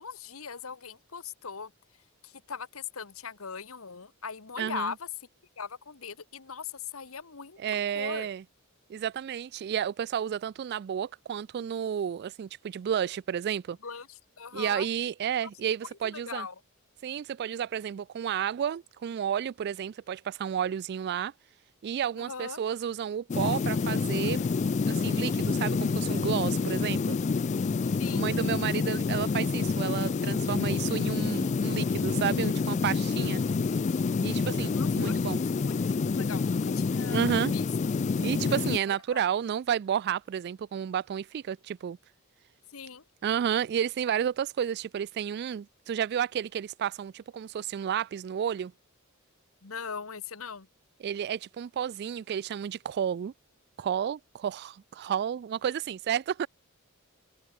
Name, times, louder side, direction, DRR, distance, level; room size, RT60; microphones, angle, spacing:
voice 1, 0.0-1.7 2.2-5.1 5.6-7.6 7.9-8.3 13.8-14.9 16.0-16.5 22.2-22.6 28.0-28.3 34.8-35.2 35.5-37.7 38.9-39.2 42.7-43.0 49.6-50.7, left 6 dB, 70° left, 1.3 m, -40 dB
voice 2, 4.6-4.9 7.6-8.4 8.9-13.8 14.5-16.5 17.0-21.3 21.8-24.4 24.9-27.2 28.1-33.4 34.2-35.4 37.1-37.5 38.2-42.0 43.2-48.7 51.0-53.3 53.8-56.5, right 8 dB, 50° right, 0.3 m, -31 dB
sound 1, 23.3-38.8, left 4 dB, 35° left, 0.3 m, -28 dB
head